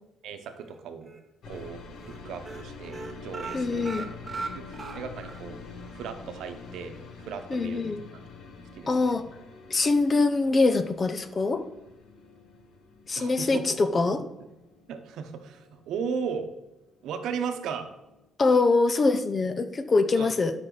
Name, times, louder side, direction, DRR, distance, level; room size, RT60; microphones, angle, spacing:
voice 1, 0.2-1.1 1.5-5.6 5.9-8.0 8.7-9.2 13.2-14.2 14.9-16.5 17.0-17.9 20.2-20.3, right 6 dB, 70° right, 7 dB, 0.9 m, -36 dB
sound 1, 0.6-1.2 1.5-1.7 2.0-2.2 2.4-5.4 5.8-5.9 6.3-6.4, right 4 dB, 20° right, 0.9 m, -38 dB
sound 2, 1.4-17.2 17.5-18.3, left 4 dB, 60° left, 1.1 m, -46 dB
voice 2, 3.5-4.0 7.5-8.0 8.9-9.2 9.7-11.6 13.1-14.2 18.4-20.5, left 3 dB, 25° left, 10 dB, 0.5 m, -23 dB
12.0 x 5.5 x 4.0 m, 0.97 s
cardioid pair, 165°, 0 cm